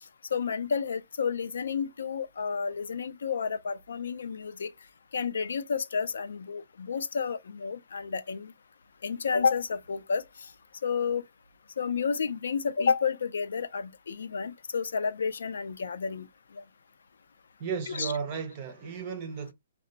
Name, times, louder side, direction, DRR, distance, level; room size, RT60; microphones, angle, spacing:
voice 1, 0.3-4.7 5.1-8.5 9.0-10.5 10.8-11.2 11.8-16.3 16.5-16.6 17.9-18.1, left 6 dB, 85° left, 0.4 m, -30 dB
voice 2, 17.6-19.5, right 6 dB, 25° right, 0.4 m, -34 dB
2.2 x 2.0 x 3.7 m
hypercardioid pair, 175°, 0 cm